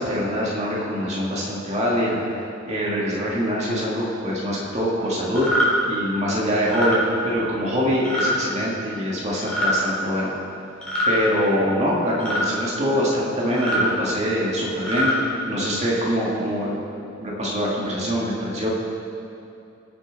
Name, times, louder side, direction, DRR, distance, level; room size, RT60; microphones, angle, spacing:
voice 1, 0.0-2.4 2.7-5.5 5.9-7.0 7.2-10.3 11.1-15.1 15.4-16.7 17.2-18.7, equal, 35° right, -5 dB, 2.0 m, -24 dB
sound 1, 5.4-5.7 6.6-7.0 8.1-8.3 9.4-9.8 10.8-11.2 12.2-12.5 13.5-13.9 14.7-15.1, equal, 5° left, 3.2 m, -23 dB
20.0 x 7.3 x 4.0 m, 2.7 s
head